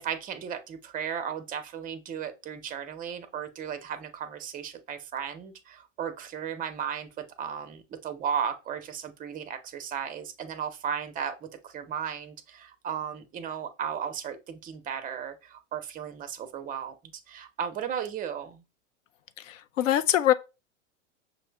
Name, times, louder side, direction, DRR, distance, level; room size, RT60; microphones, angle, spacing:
voice 1, 0.0-18.6, right 8 dB, 20° right, 0.6 m, -35 dB
voice 2, 19.5-20.3, left 12 dB, 80° left, 0.5 m, -23 dB
6.0 x 2.0 x 3.3 m
hypercardioid pair, 105°, 38 cm